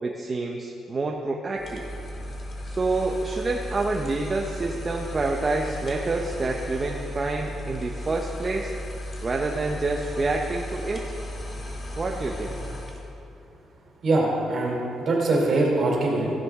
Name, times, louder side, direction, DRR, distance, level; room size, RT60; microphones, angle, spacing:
voice 1, 0.0-1.8 2.6-8.7 9.2-11.0 12.0-12.6, right 3 dB, 30° right, 1 dB, 0.8 m, -27 dB
sound 1, 1.6-13.1, left 1 dB, 40° left, 1.8 m, -35 dB
voice 2, 14.0-16.3, right 2 dB, 55° right, -2 dB, 3.1 m, -23 dB
15.5 x 9.4 x 3.7 m, 2.7 s
cardioid pair, 90°, 0 cm